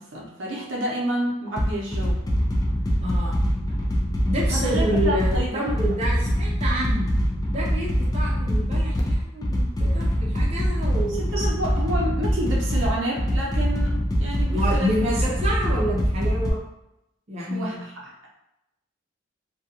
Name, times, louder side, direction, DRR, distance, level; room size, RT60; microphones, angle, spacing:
voice 1, 0.0-2.2 4.5-5.8 11.1-14.9 17.5-18.1, right 1 dB, 85° right, -3 dB, 0.7 m, -30 dB
sound 1, 1.6-16.5, equal, 20° left, 0.3 m, -24 dB
voice 2, 3.0-3.4 4.2-7.1 7.5-11.5 14.5-16.6 17.3-17.8, equal, 35° right, -5 dB, 0.5 m, -28 dB
2.3 x 2.2 x 2.8 m, 0.86 s
head